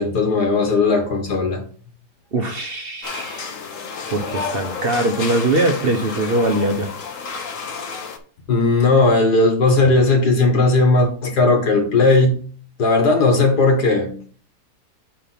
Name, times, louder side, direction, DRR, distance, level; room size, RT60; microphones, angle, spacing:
voice 1, 0.0-1.6 8.5-12.4 12.8-14.3, left 3 dB, 80° left, 2.4 m, -16 dB
voice 2, 2.3-3.5 4.1-6.9, right 2 dB, 45° right, 1.0 m, -21 dB
sound 1, 3.0-8.2, left 5 dB, 55° left, 1.4 m, -30 dB
8.6 x 3.4 x 5.8 m
omnidirectional pair, 1.7 m